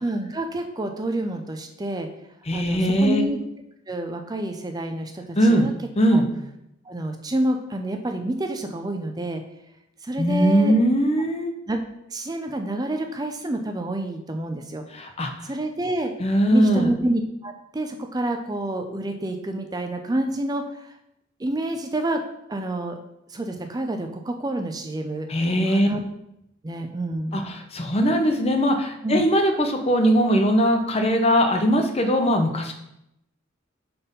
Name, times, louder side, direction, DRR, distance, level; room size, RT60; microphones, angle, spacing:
voice 1, 0.0-2.1 2.5-3.4 3.9-5.2 5.6-5.7 6.1-6.2 6.9-9.4 10.0-10.7 11.7-11.8 12.1-14.8 15.4-16.1 16.5-20.9 21.4-22.2 22.5-23.0 23.3-25.3 25.7-26.0 26.6-27.4 29.0-29.2, right 1 dB, 20° right, 5 dB, 0.5 m, -28 dB
voice 2, 2.5-3.3 5.4-5.7 6.0-6.3 10.2-11.5 14.9-15.5 16.2-16.9 25.3-25.9 27.3-32.7, equal, 35° left, 5 dB, 0.8 m, -20 dB
5.5 x 4.3 x 5.3 m, 0.81 s
head